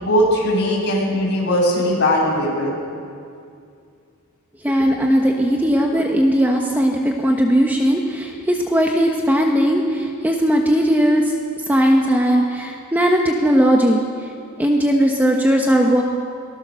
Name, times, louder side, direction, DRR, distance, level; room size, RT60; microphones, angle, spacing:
voice 1, 0.0-2.7, equal, 50° left, -3 dB, 7.0 m, -19 dB
voice 2, 4.6-11.2 11.7-14.0 14.6-16.0, equal, 10° right, 1 dB, 1.2 m, -18 dB
21.5 x 19.5 x 6.5 m, 2.4 s
head